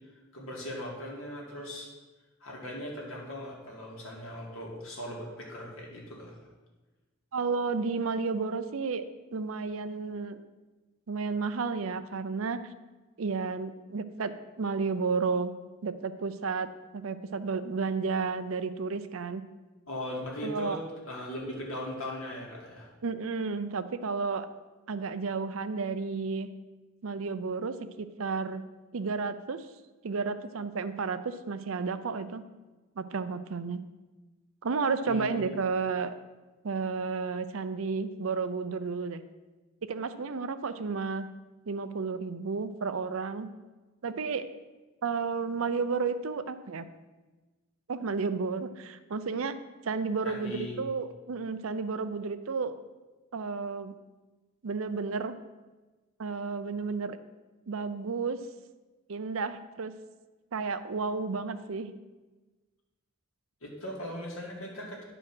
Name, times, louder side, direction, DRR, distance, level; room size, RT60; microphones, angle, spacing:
voice 1, 0.3-1.9 2.4-6.4 19.9-20.8 21.1-22.9 35.1-35.6 50.2-50.8 63.6-65.0, left 1 dB, 75° left, -2 dB, 2.3 m, -39 dB
voice 2, 7.3-9.0 9.3-10.4 11.1-12.6 13.2-14.3 14.6-15.5 15.8-16.7 16.9-19.4 20.4-20.8 23.0-24.5 24.9-26.5 27.0-28.6 28.9-29.7 30.0-32.4 33.0-33.8 34.6-36.1 36.6-39.2 39.8-41.3 41.7-43.5 44.0-44.4 45.0-46.8 47.9-49.6 49.8-52.7 53.3-53.9 54.6-55.4 56.2-57.2 57.7-58.4 59.1-59.9 60.5-61.9, right 4 dB, 75° right, 11 dB, 0.6 m, -32 dB
9.9 x 5.0 x 6.1 m, 1.2 s
head